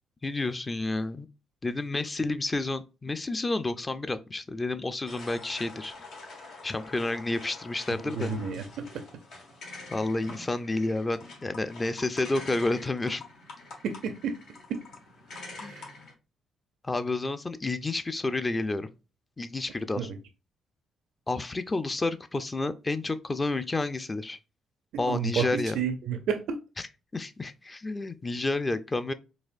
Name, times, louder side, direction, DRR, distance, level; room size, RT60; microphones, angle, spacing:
voice 1, 0.2-1.3 1.6-5.9 6.6-8.3 9.9-13.2 15.6-15.8 16.8-18.9 19.4-20.1 21.3-24.4 25.0-25.8 27.1-29.1, left 2 dB, 25° left, 0.5 m, -30 dB
sound 1, 5.1-16.1, left 3 dB, 80° left, 1.2 m, -46 dB
voice 2, 8.1-9.0 13.8-14.4 14.7-14.8 15.6-15.9 20.0-20.2 25.1-26.6, right 6 dB, 80° right, 0.5 m, -31 dB
4.1 x 2.6 x 2.5 m
cardioid pair, 70°, 0 cm